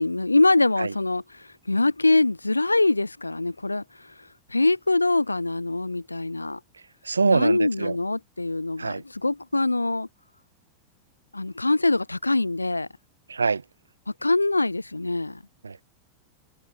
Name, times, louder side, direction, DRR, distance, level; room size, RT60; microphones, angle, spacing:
voice 1, 0.0-4.1 4.5-6.6 7.2-10.1 11.3-12.9 14.2-15.4, left 2 dB, 85° left, 6.5 m, -23 dB
voice 2, 7.1-7.9 8.8-9.0 13.3-13.6 15.6-15.8, right 4 dB, 75° right, 1.5 m, -24 dB
figure-of-eight pair, 90°, 0 cm